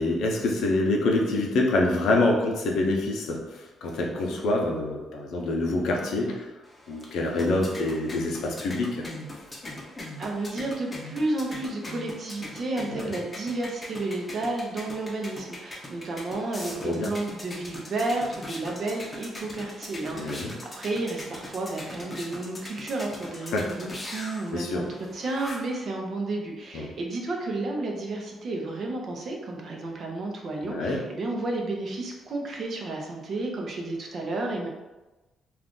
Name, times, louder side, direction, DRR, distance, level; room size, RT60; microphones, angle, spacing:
voice 1, 0.0-6.5 6.9-9.1 12.9-13.2 16.8-17.1 20.2-20.5 23.5-23.7 24.5-24.9 26.7-26.9 30.6-31.1, left 2 dB, 80° left, 0 dB, 0.6 m, -26 dB
sound 1, 6.6-25.8, left 1 dB, 25° left, 0.7 m, -41 dB
voice 2, 10.2-34.7, right 2 dB, 55° right, 0 dB, 0.6 m, -32 dB
2.4 x 2.4 x 3.6 m, 1.1 s
cardioid pair, 90°, 0 cm